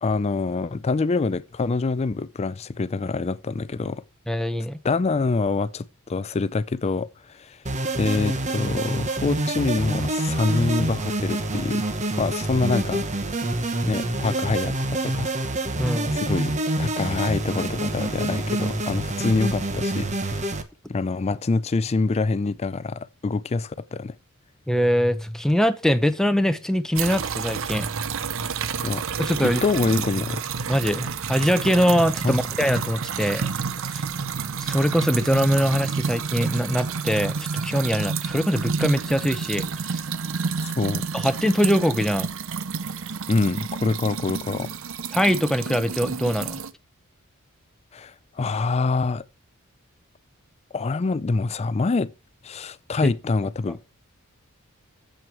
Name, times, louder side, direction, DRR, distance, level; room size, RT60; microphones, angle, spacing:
voice 1, 0.0-4.0 4.8-7.6 8.0-11.9 12.2-13.0 13.9-15.3 16.1-20.4 20.9-24.2 28.8-29.0 29.4-30.4 32.2-32.4 40.6-41.1 43.3-44.7 47.9-49.3 50.7-52.1 52.4-53.8, left 3 dB, 30° left, 0.4 m, -25 dB
voice 2, 4.3-4.8 15.8-16.1 24.7-27.9 29.2-29.6 30.7-33.5 33.8-34.0 34.6-40.0 41.1-42.3 45.1-46.6 53.0-53.1, equal, ahead, 0.7 m, -23 dB
sound 1, 7.7-20.6, right 1 dB, 35° right, 1.0 m, -27 dB
sound 2, 26.9-46.7, right 5 dB, 65° right, 0.7 m, -29 dB
7.8 x 7.7 x 4.7 m
head